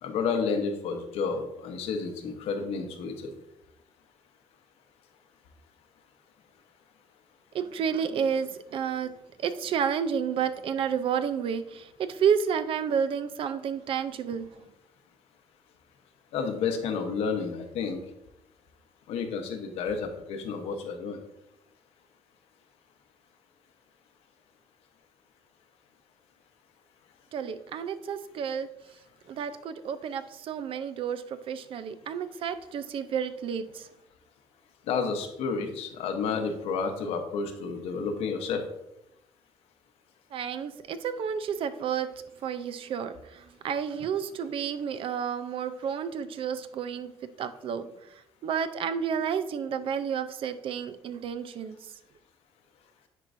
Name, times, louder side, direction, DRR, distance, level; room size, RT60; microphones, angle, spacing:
voice 1, 0.0-3.3 16.3-18.0 19.1-21.2 34.9-38.6, left 5 dB, 85° left, 5 dB, 1.0 m, -31 dB
voice 2, 7.5-9.1 9.4-14.7 27.3-28.7 29.3-33.9 40.3-42.1 42.4-47.1 47.4-48.1 48.4-51.8, right 7 dB, 60° right, 11 dB, 0.6 m, -31 dB
9.6 x 4.6 x 2.6 m, 0.86 s
cardioid pair, 105°, 10 cm